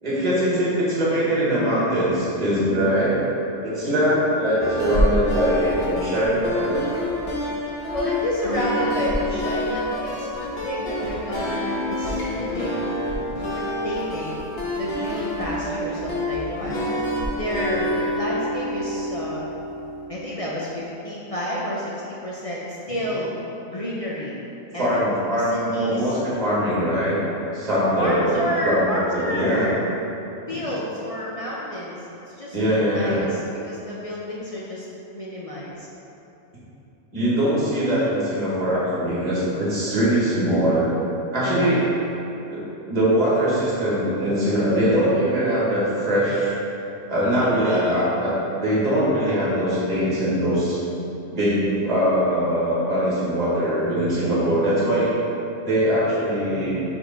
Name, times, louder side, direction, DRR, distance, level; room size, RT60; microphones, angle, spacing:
voice 1, 0.0-3.2 3.6-6.8 24.8-27.1 27.5-29.7 32.5-33.2 37.1-40.9 41.3-41.9 42.5-42.6 42.9-46.5 47.1-48.3 48.6-50.8 51.3-55.1 55.6-56.8, equal, 35° right, -8 dB, 1.7 m, -22 dB
sound 1, 4.6-20.1, equal, 65° left, 1.3 m, -27 dB
voice 2, 7.9-12.8 13.5-14.4 14.7-16.8 17.3-19.4 20.1-21.9 22.2-23.3 23.7-24.4 24.7-25.0 25.3-26.2 28.0-29.9 30.5-32.6 32.9-34.9 35.1-35.9 54.6-54.9, equal, 40° left, -6 dB, 0.6 m, -30 dB
5.0 x 3.8 x 5.2 m, 2.9 s
omnidirectional pair, 1.1 m